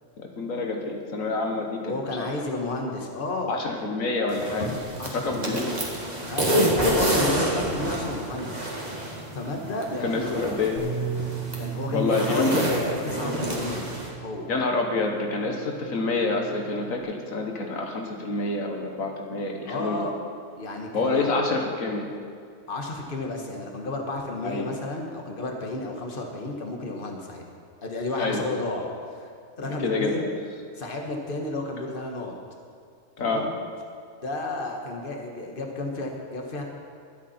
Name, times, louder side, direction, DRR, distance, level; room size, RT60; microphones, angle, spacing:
voice 1, 0.2-1.9 2.2-2.3 3.5-4.7 5.1-5.8 10.0-10.8 11.9-12.6 14.5-20.1 20.9-22.1 24.4-24.7 28.2-28.4 29.8-30.3 33.2-33.5, left 3 dB, 90° left, 2 dB, 1.7 m, -27 dB
voice 2, 1.8-3.9 5.0-5.6 6.2-8.6 9.3-10.6 11.6-14.5 19.6-20.1 20.6-21.3 22.7-27.4 27.8-29.3 29.6-30.3 30.8-32.4 33.2-33.5 34.2-36.6, left 2 dB, 40° left, 1 dB, 1.7 m, -32 dB
sound 1, 4.3-14.1, right 1 dB, 30° right, 2.0 m, -28 dB
Bass guitar, 10.8-17.0, right 9 dB, 65° right, 4.7 m, -37 dB
21.5 x 8.5 x 4.4 m, 2.3 s
omnidirectional pair, 1.4 m